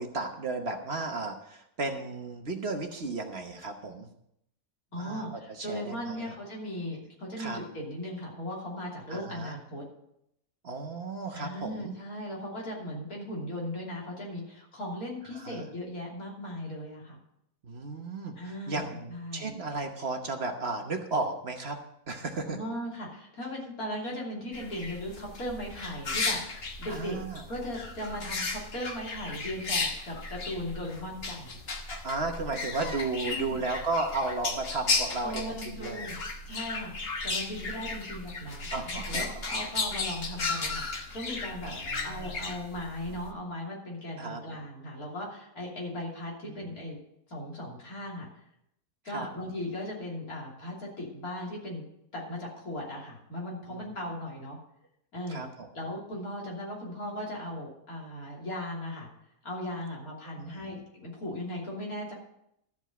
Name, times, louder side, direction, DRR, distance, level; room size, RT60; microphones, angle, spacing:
voice 1, 0.0-4.1 4.9-6.3 7.4-7.6 9.1-9.6 10.6-11.9 15.3-15.7 17.6-21.8 22.1-22.6 26.9-27.4 32.0-36.1 38.7-39.4 41.6-42.4 44.2-44.4 46.4-46.6 49.1-49.3 53.7-53.8 55.3-55.7 60.4-60.7, right 3 dB, 45° right, 4 dB, 1.2 m, -34 dB
voice 2, 4.9-9.8 11.3-17.2 18.4-19.6 22.5-27.2 27.5-31.6 33.2-33.6 35.2-36.2 36.4-47.0 47.3-48.3 49.0-51.8 52.1-54.6 55.1-55.5 55.7-59.1 59.4-62.1, left 1 dB, 75° left, -3 dB, 3.5 m, -38 dB
sound 1, 24.5-43.3, left 3 dB, 45° left, 1.3 m, -35 dB
13.5 x 5.4 x 7.8 m, 0.78 s
omnidirectional pair, 1.6 m